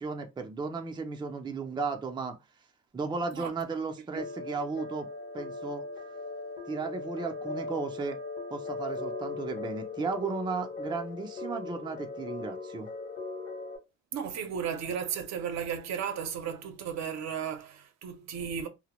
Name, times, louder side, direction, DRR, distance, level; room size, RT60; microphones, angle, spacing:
voice 1, 0.0-2.4 2.9-5.1 5.3-5.8 6.7-8.2 8.5-12.9, right 4 dB, 15° right, 0.4 m, -35 dB
sound 1, 4.2-13.8, left 3 dB, 40° left, 0.7 m, -39 dB
voice 2, 14.1-18.7, right 7 dB, 65° right, 0.6 m, -34 dB
2.1 x 2.0 x 2.9 m
cardioid pair, 90°, 30 cm